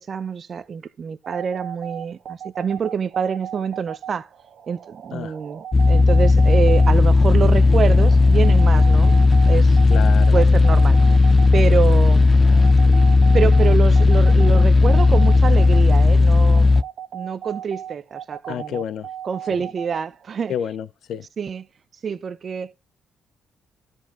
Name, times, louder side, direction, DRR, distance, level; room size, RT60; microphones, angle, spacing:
voice 1, 0.0-4.3 4.7-9.1 9.5-9.8 10.3-12.3 13.3-16.7 17.1-18.8 19.2-20.5 21.4-21.7 22.0-22.7, right 6 dB, 50° right, 0.9 m, -26 dB
sound 1, 1.2-20.5, right 10 dB, 65° right, 1.4 m, -37 dB
sound 2, 5.7-16.8, left 3 dB, 30° left, 0.5 m, -14 dB
voice 2, 9.9-10.4 18.5-19.1 20.5-21.2, left 8 dB, 70° left, 0.7 m, -29 dB
13.0 x 4.7 x 4.4 m
cardioid pair, 90°, 0 cm